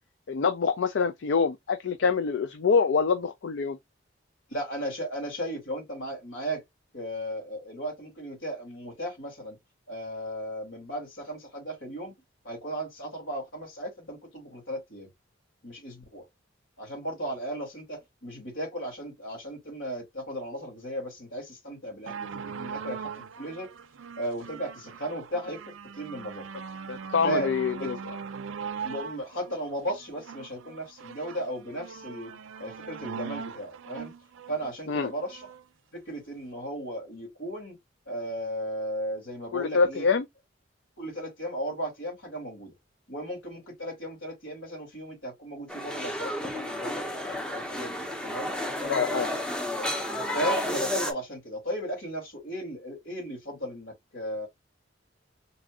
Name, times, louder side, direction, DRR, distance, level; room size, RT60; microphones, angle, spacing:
voice 1, 0.3-3.8 26.9-28.0 34.9-35.1 39.5-40.2 48.8-49.3, left 5 dB, 65° left, 0.4 m, -25 dB
voice 2, 4.5-6.6 6.9-9.6 9.9-12.1 12.4-15.1 15.6-16.3 16.8-23.7 24.2-26.5 27.2-27.5 27.8-27.9 28.8-32.3 32.6-34.1 34.5-35.5 35.9-37.8 38.1-40.1 41.0-42.7 43.1-48.5 50.3-54.5, right 1 dB, 80° left, 2.5 m, -35 dB
sound 1, 22.1-35.6 36.4-36.5, right 6 dB, 85° right, 0.5 m, -40 dB
sound 2, 45.7-51.1, left 1 dB, 5° left, 0.6 m, -31 dB
4.2 x 2.6 x 2.4 m
head